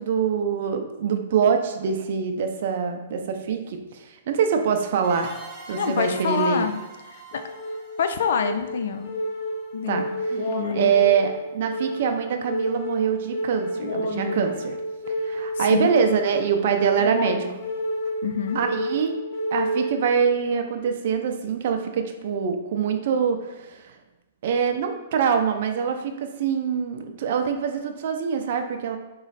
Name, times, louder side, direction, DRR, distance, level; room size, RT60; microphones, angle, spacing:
voice 1, 0.0-5.3 5.7-6.7 9.9-10.0 10.5-14.8 15.1-17.6 18.5-19.1 19.5-23.9 24.4-29.0, right 7 dB, 55° right, 5 dB, 0.5 m, -24 dB
sound 1, 5.0-9.5, right 4 dB, 25° right, 1.0 m, -44 dB
voice 2, 5.7-6.8 7.1-7.4 8.0-9.1 9.7-10.1 10.5-10.9 15.6-15.9 18.2-18.6, left 7 dB, 70° left, 8 dB, 0.4 m, -26 dB
sound 2, 7.3-20.3, equal, 40° left, 0.9 m, -30 dB
3.8 x 3.1 x 4.0 m, 1.1 s
hypercardioid pair, 150°, 0 cm